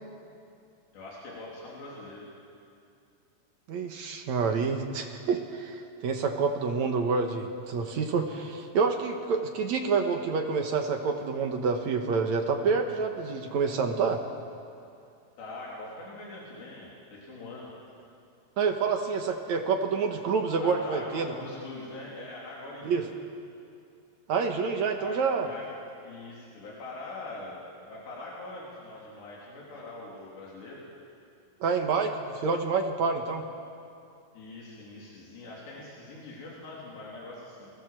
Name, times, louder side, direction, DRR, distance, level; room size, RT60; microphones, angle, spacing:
voice 1, 0.9-2.3 15.4-17.7 20.6-23.1 25.0-25.7 26.0-30.8 34.3-37.7, left 2 dB, 85° left, -4 dB, 5.8 m, -43 dB
voice 2, 3.7-14.2 18.6-21.3 22.8-23.0 24.3-25.5 31.6-33.4, right 5 dB, 60° right, 4 dB, 2.1 m, -28 dB
28.5 x 20.0 x 7.7 m, 2.5 s
omnidirectional pair, 4.8 m